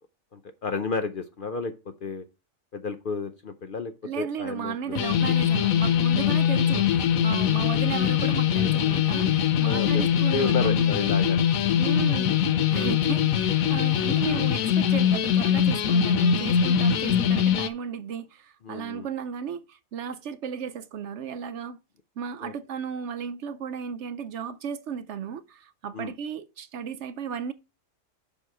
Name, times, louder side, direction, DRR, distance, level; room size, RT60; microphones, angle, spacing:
voice 1, 0.3-2.2 2.7-4.9 7.5-7.7 9.6-10.0 10.3-11.4 12.7-12.9 18.6-19.1 22.4-22.5 25.9-26.1, left 4 dB, 50° left, 0.7 m, -32 dB
voice 2, 4.0-11.0 11.8-12.4 12.7-21.8 22.2-27.5, right 7 dB, 65° right, 0.8 m, -35 dB
sound 1, 5.0-17.7, left 9 dB, 85° left, 1.1 m, -22 dB
7.2 x 5.5 x 4.6 m
omnidirectional pair, 1.4 m